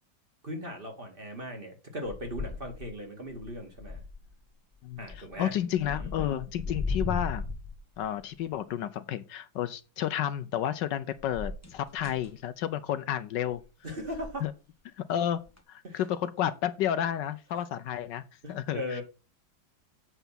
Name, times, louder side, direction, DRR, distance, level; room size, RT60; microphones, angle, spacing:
voice 1, 0.4-4.0 5.0-5.5 5.8-6.1 13.8-14.5 15.8-16.0 18.4-19.0, left 1 dB, 30° right, 2.2 m, -38 dB
sound 1, 2.0-3.0 3.3-4.3 4.9-5.4 5.7-8.2 11.2-12.3 13.4-13.7 14.0-14.4 15.5-15.6, left 4 dB, 10° left, 1.2 m, -37 dB
voice 2, 4.8-7.4 8.0-13.6 14.4-14.5 15.0-15.4 15.7-18.2 18.5-19.0, left 10 dB, 75° left, 1.2 m, -31 dB
8.2 x 5.6 x 5.7 m
omnidirectional pair, 2.1 m